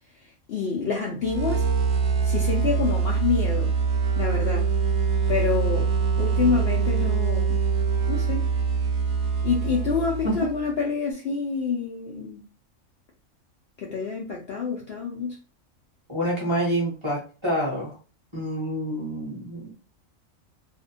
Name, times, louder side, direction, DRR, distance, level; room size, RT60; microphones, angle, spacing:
voice 1, 0.5-1.7 2.2-3.7 4.2-4.6 5.3-5.9 6.2-7.6 8.1-8.5 9.4-12.4 13.8-15.4, left 5 dB, 65° left, 0.6 m, -27 dB
sound 1, 1.2-10.7, right 5 dB, 65° right, 0.7 m, -24 dB
voice 2, 16.1-18.0 18.3-19.7, equal, 25° right, 0.8 m, -27 dB
2.5 x 2.1 x 2.7 m
omnidirectional pair, 1.4 m